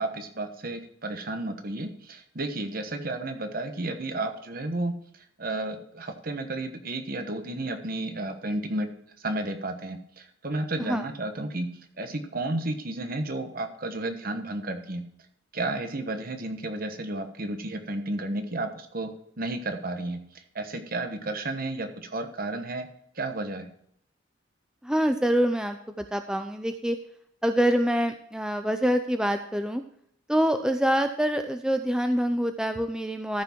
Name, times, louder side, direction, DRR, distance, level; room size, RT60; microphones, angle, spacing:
voice 1, 0.0-4.9 5.4-8.9 9.2-11.7 12.0-15.0 15.5-19.1 19.4-22.9 23.1-23.7, right 2 dB, 50° right, 7 dB, 1.2 m, -32 dB
voice 2, 24.8-27.0 27.4-29.8 30.3-33.4, equal, 5° right, 7 dB, 0.4 m, -25 dB
13.5 x 6.0 x 4.5 m, 0.68 s
head